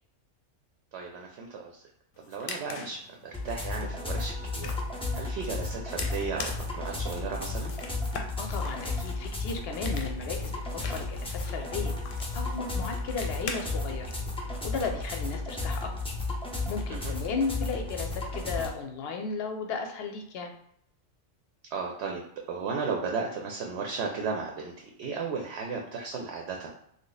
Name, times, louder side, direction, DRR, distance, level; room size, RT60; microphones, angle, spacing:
voice 1, 0.9-1.8 2.2-4.8 5.1-7.7 16.9-17.1 21.7-22.2 22.5-26.7, right 5 dB, 70° right, 1 dB, 0.8 m, -35 dB
sound 1, 2.1-14.1, left 5 dB, 90° left, 0.9 m, -43 dB
sound 2, 3.3-18.7, left 2 dB, 10° left, 0.3 m, -33 dB
voice 2, 8.4-11.9 12.3-14.1 14.6-15.9 16.7-20.5, left 4 dB, 65° left, 4 dB, 0.7 m, -35 dB
3.2 x 2.0 x 3.9 m, 0.72 s
omnidirectional pair, 1.3 m